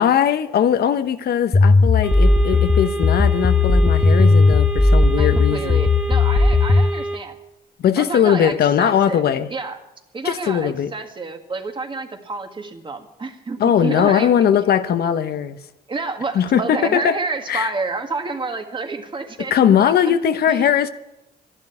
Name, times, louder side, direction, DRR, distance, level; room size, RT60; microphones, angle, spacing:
voice 1, 0.0-5.8 7.8-9.5 10.2-10.9 13.6-15.6 16.3-17.2 17.5-17.7 19.4-20.9, left 9 dB, 70° left, 11 dB, 0.9 m, -19 dB
sound 1, 1.5-6.9, left 3 dB, 20° left, 1.0 m, -15 dB
sound 2, 2.0-7.2, right 1 dB, 5° right, 1.5 m, -28 dB
voice 2, 5.1-7.4 8.0-9.2 9.5-9.8 10.1-14.6 15.9-20.1 20.5-20.7, right 3 dB, 30° right, 5 dB, 1.8 m, -29 dB
12.5 x 11.0 x 9.7 m, 0.96 s
cardioid pair, 115°, 17 cm